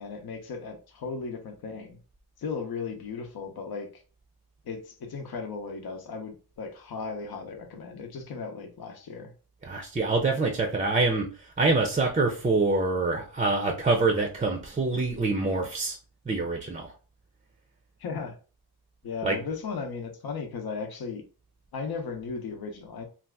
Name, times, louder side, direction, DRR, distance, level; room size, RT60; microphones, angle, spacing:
voice 1, 0.0-2.0 2.4-4.0 4.6-9.3 10.3-10.4 18.0-18.4 19.0-21.2 21.7-23.0, left 5 dB, 65° left, 4 dB, 0.7 m, -36 dB
voice 2, 9.6-11.3 11.6-15.9 16.3-16.9 19.2-19.4, right 3 dB, 20° right, 3 dB, 0.5 m, -25 dB
2.7 x 2.4 x 3.4 m, 0.36 s
wide cardioid pair, 100°, 39 cm